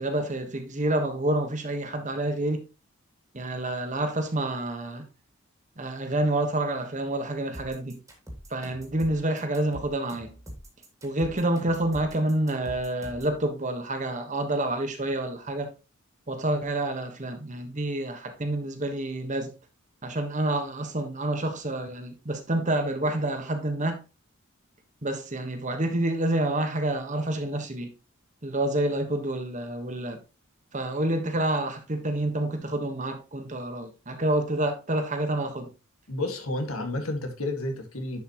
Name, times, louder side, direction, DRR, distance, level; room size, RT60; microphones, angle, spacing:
voice 1, 0.0-2.6 3.3-5.1 5.8-8.0 8.5-10.3 11.0-15.7 16.3-19.5 20.0-24.0 25.0-27.9 28.4-30.2 30.7-35.7, right 1 dB, 35° right, 1.3 m, -28 dB
sound 1, 7.5-13.4, equal, 15° right, 2.6 m, -43 dB
voice 2, 36.1-38.2, left 2 dB, 80° left, 1.9 m, -31 dB
10.5 x 5.6 x 3.0 m
head